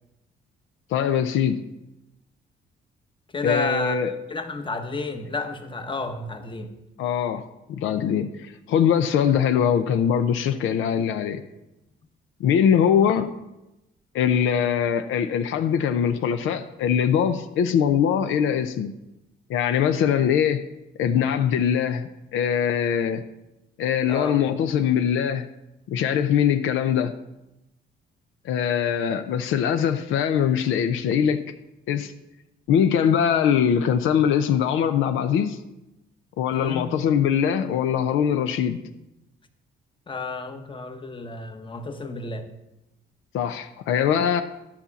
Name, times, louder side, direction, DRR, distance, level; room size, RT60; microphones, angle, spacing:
voice 1, 0.9-1.6 3.4-4.1 7.0-7.4 7.7-11.4 12.4-13.3 14.1-18.9 19.5-20.7 21.0-23.2 23.8-25.5 25.9-27.1 28.4-31.4 31.9-32.1 32.7-35.6 36.4-38.8 43.3-44.4, left 8 dB, 85° left, 9 dB, 0.6 m, -22 dB
voice 2, 3.3-6.7 24.1-24.4 36.5-36.9 40.1-42.5, left 3 dB, 25° left, 7 dB, 1.0 m, -31 dB
10.5 x 4.3 x 7.1 m, 0.93 s
cardioid pair, 90°, 20 cm